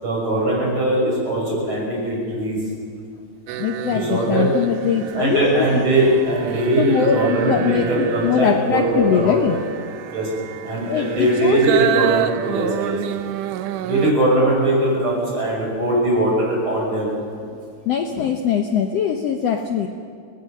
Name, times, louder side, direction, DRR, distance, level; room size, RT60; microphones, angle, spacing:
voice 1, 0.0-2.6 3.9-4.5 5.1-9.6 10.1-10.3 10.6-13.0 13.8-17.1, right 1 dB, 35° right, -3 dB, 6.9 m, -20 dB
sound 1, 3.5-14.1, right 11 dB, 75° right, 2.0 m, -28 dB
voice 2, 3.6-5.8 6.8-9.6 10.9-11.6 17.9-19.9, left 8 dB, 85° left, 5 dB, 1.4 m, -21 dB
25.0 x 18.0 x 6.6 m, 2.3 s
omnidirectional pair, 4.1 m